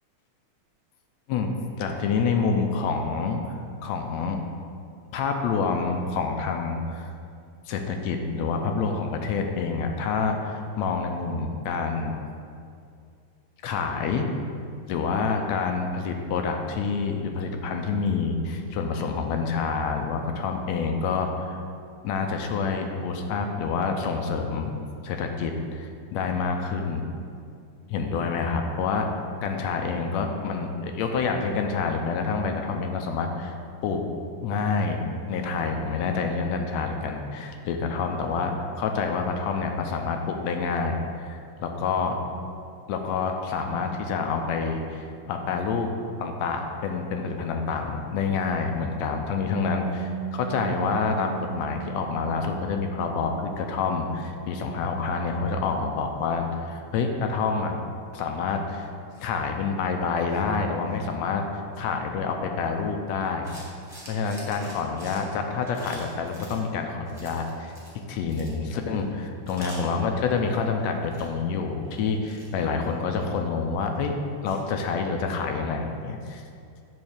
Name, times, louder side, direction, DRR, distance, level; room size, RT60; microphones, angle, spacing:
voice 1, 1.8-3.6 3.8-4.4 5.1-7.1 7.7-12.1 13.6-14.3 14.9-21.6 22.0-24.7 25.0-27.0 27.9-29.1 29.4-33.5 33.8-34.0 34.4-42.2 42.9-45.9 46.2-57.8 58.1-58.9 59.2-61.5 61.8-63.5 64.1-74.1 74.4-76.4, left 5 dB, 80° left, 4 dB, 1.7 m, -27 dB
Bass guitar, 49.5-55.7, right 11 dB, 85° right, 2.2 m, -38 dB
sound 1, 63.4-66.6 67.1-68.0 68.2-68.5 68.9-69.0 69.5-70.7 70.9-71.3 71.8-73.5 73.9-74.0 74.4-74.6, equal, ahead, 1.1 m, -46 dB
8.8 x 3.2 x 6.5 m, 2.4 s
omnidirectional pair, 3.3 m